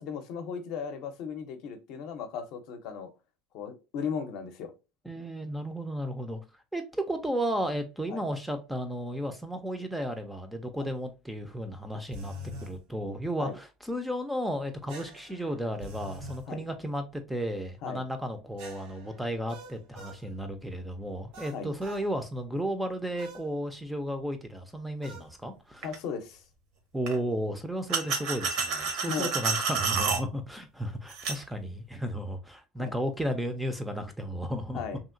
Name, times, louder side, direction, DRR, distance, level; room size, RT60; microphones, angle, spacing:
voice 1, 0.0-3.1 3.5-4.7 8.1-8.2 10.8-10.9 13.4-13.6 16.5-16.6 17.8-18.0 21.5-21.7 25.8-26.4 29.0-29.3 32.8-32.9 34.7-35.0, left 6 dB, 60° left, 0.6 m, -36 dB
voice 2, 5.1-6.4 6.7-12.4 12.6-25.9 26.9-34.8, equal, 5° right, 0.4 m, -34 dB
sound 1, 12.1-12.8 14.9-16.4 18.6-20.2 21.3-22.1 23.2-23.5 25.0-25.3, left 1 dB, 80° right, 1.1 m, -44 dB
sound 2, 25.8-26.0 27.1-27.2 27.9-30.2 31.1-31.4, right 5 dB, 65° right, 0.7 m, -29 dB
2.8 x 2.7 x 2.5 m
cardioid pair, 145°, 0 cm